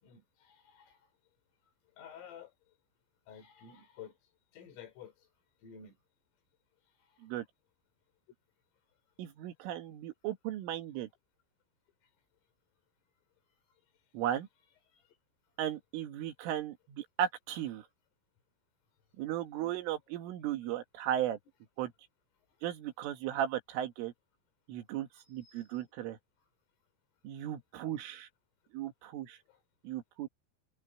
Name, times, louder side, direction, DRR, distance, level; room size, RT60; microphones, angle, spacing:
voice 1, 0.0-1.0 2.0-2.5 3.3-4.2 4.5-5.1 5.6-6.0 14.9-15.0 20.7-20.8 25.2-25.9 29.5-29.6, left 8 dB, 80° left, 6.9 m, -52 dB
voice 2, 9.2-11.1 14.1-14.5 15.6-17.9 19.2-21.4 21.8-21.9 22.6-24.1 24.7-26.2 27.2-28.3 28.7-29.4 29.8-30.3, right 11 dB, 75° right, 4.3 m, -36 dB
open air
omnidirectional pair, 5.8 m